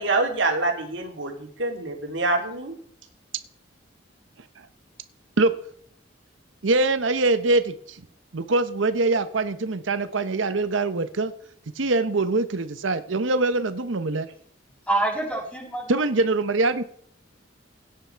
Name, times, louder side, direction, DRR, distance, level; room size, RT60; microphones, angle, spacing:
voice 1, 0.0-2.7, right 2 dB, 70° right, 2 dB, 2.8 m, -26 dB
voice 2, 6.6-8.0 8.3-11.3 11.8-14.3 15.9-16.8, right 2 dB, 85° right, 11 dB, 0.9 m, -23 dB
voice 3, 14.9-16.0, right 2 dB, 5° left, -4 dB, 7.0 m, -26 dB
17.0 x 9.7 x 4.5 m, 0.62 s
head